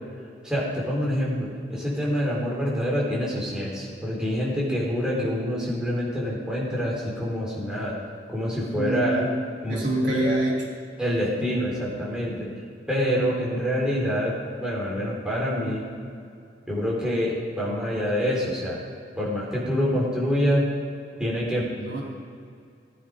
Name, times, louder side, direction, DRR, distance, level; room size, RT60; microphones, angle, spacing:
voice 1, 0.4-7.9 8.3-9.2 9.6-10.4 11.0-12.6 12.9-15.9 16.7-18.8 19.2-20.7 21.2-21.7, equal, 5° right, -6 dB, 3.7 m, -26 dB
voice 2, 8.8-9.3 9.7-10.6 21.8-22.0, right 1 dB, 85° right, -3 dB, 3.3 m, -25 dB
17.5 x 9.8 x 5.2 m, 2.3 s
head